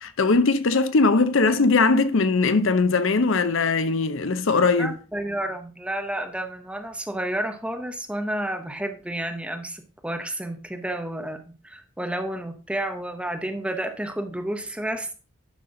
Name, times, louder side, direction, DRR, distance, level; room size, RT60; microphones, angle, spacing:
voice 1, 0.0-4.9, left 3 dB, 65° left, 0.7 m, -20 dB
voice 2, 4.8-15.1, right 1 dB, 5° right, 0.8 m, -31 dB
10.5 x 5.9 x 3.8 m
head